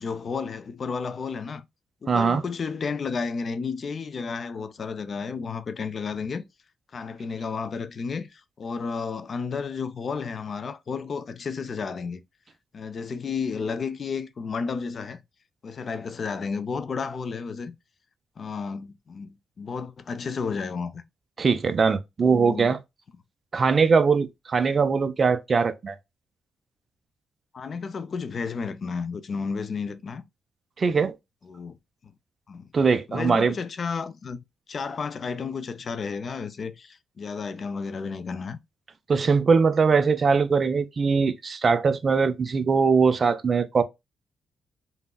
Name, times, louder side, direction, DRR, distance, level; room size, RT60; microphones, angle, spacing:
voice 1, 0.0-1.7 2.0-6.4 6.9-12.2 12.7-15.2 15.6-17.7 18.4-21.0 22.2-22.8 27.5-30.2 31.4-31.8 32.0-32.1 32.5-32.7 33.1-34.4 34.7-38.6, left 5 dB, 45° left, 0.3 m, -32 dB
voice 2, 2.1-2.4 21.4-22.8 23.5-26.0 30.8-31.1 32.7-33.5 39.1-43.8, right 5 dB, 40° right, 0.3 m, -21 dB
3.5 x 2.0 x 2.2 m
cardioid pair, 115°, 0 cm